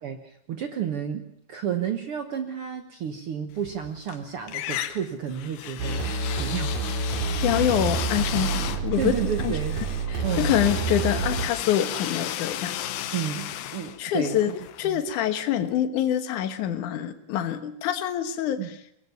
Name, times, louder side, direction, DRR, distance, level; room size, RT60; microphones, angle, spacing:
voice 1, 0.0-6.1 6.4-6.7 7.5-7.7 9.0-9.8 10.2-10.5 13.1-14.6 14.8-15.0 18.6-18.7, right 8 dB, 80° right, 6 dB, 1.2 m, -31 dB
sound 1, 3.6-4.2 4.5-15.4, left 11 dB, 80° left, 2.9 m, -34 dB
sound 2, 5.8-11.5, right 4 dB, 65° right, 3.9 m, -28 dB
voice 2, 7.4-9.1 9.4-9.5 10.1-12.7 14.0-14.5 14.8-18.6, left 11 dB, 65° left, 8 dB, 2.6 m, -25 dB
22.5 x 18.0 x 6.8 m, 0.74 s
omnidirectional pair, 4.3 m